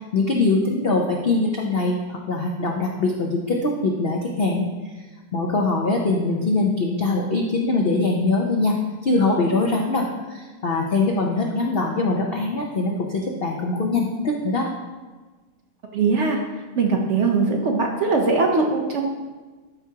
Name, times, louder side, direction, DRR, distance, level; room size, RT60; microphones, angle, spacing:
voice 1, 0.0-5.0 5.3-8.8 9.0-14.7, left 3 dB, 80° left, 0 dB, 0.5 m, -22 dB
voice 2, 15.9-16.4 16.8-19.1, right 4 dB, 60° right, 1 dB, 0.8 m, -21 dB
12.0 x 4.7 x 2.8 m, 1.3 s
omnidirectional pair, 1.9 m